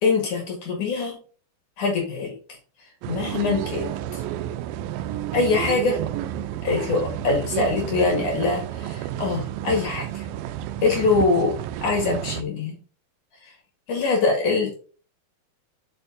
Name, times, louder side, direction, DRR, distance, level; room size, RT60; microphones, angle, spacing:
voice 1, 0.0-1.2 1.8-2.3 3.1-4.2 5.3-6.0 6.6-10.2 10.8-11.6 11.8-12.8 13.9-14.8, left 3 dB, 55° left, 1 dB, 2.9 m, -23 dB
sound 1, 3.0-12.4, right 11 dB, 85° right, 2.1 m, -31 dB
6.9 x 5.4 x 3.8 m, 0.39 s
omnidirectional pair, 4.7 m